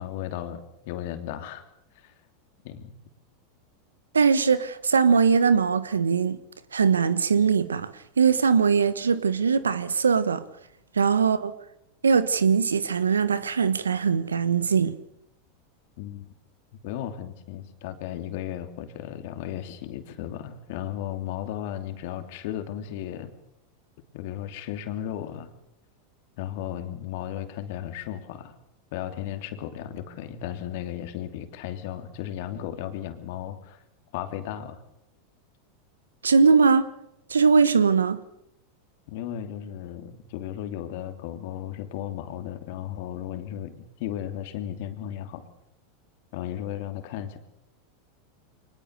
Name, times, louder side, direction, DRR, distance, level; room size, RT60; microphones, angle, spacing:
voice 1, 0.0-1.6 1.9-2.1 2.6-2.9 16.0-16.3 16.8-23.3 24.1-25.5 26.4-28.5 28.9-33.8 34.1-34.8 39.1-45.5 46.3-47.4, left 11 dB, 60° left, 2.8 m, -35 dB
voice 2, 4.1-6.4 6.7-7.9 8.2-10.4 10.9-11.5 12.0-14.9 36.2-36.9 37.3-38.2, right 5 dB, 90° right, 1.3 m, -21 dB
23.5 x 20.0 x 6.7 m
hypercardioid pair, 95°, 0 cm